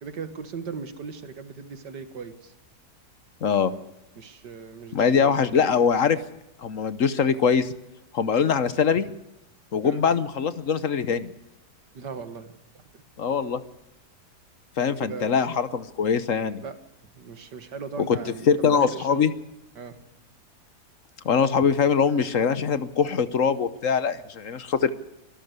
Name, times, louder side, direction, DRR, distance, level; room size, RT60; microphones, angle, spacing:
voice 1, 0.0-2.5 4.2-5.2 9.8-10.0 11.9-12.5 12.9-13.0 14.8-15.4 16.6-16.8 17.1-19.3 19.8-20.0, right 5 dB, 85° right, 10 dB, 2.3 m, -38 dB
voice 2, 3.4-3.7 4.9-6.2 6.6-7.7 8.1-9.1 9.7-11.3 13.2-13.6 14.8-16.6 18.1-18.2 18.5-19.3 21.2-24.9, left 6 dB, 55° left, 14 dB, 1.2 m, -22 dB
24.5 x 13.0 x 8.1 m, 0.89 s
omnidirectional pair, 1.8 m